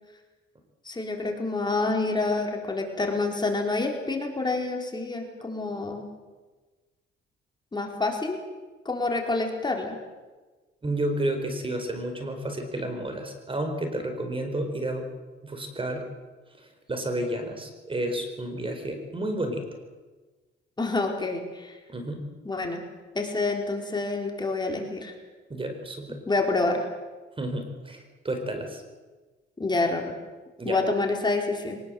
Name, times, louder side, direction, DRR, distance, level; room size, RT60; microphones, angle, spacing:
voice 1, 0.8-6.1 7.7-8.4 8.8-10.0 20.8-21.8 22.4-22.8 23.1-25.1 26.3-26.8 29.6-30.1 30.6-31.8, left 3 dB, 20° left, 2 dB, 4.3 m, -27 dB
voice 2, 10.8-15.1 15.4-16.1 16.9-19.6 21.9-22.2 25.5-26.2 27.4-28.0 28.2-28.8 30.6-30.8, right 1 dB, 25° right, 6 dB, 4.6 m, -31 dB
23.0 x 20.0 x 7.8 m, 1.3 s
cardioid pair, 90°, 20 cm